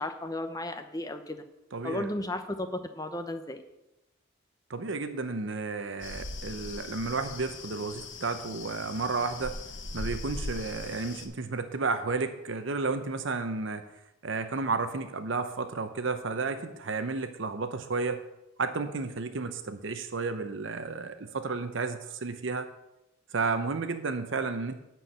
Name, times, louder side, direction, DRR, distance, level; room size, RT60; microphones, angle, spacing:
voice 1, 0.0-1.4 1.8-2.7 3.0-3.6, left 1 dB, 15° left, 7 dB, 0.8 m, -34 dB
voice 2, 1.7-2.1 4.7-9.6 9.9-13.8 14.2-18.2 18.6-22.7 23.3-24.7, right 4 dB, 60° right, 8 dB, 0.7 m, -32 dB
sound 1, 6.0-11.3, left 2 dB, 60° left, 1.1 m, -40 dB
11.0 x 4.6 x 7.9 m, 0.93 s
head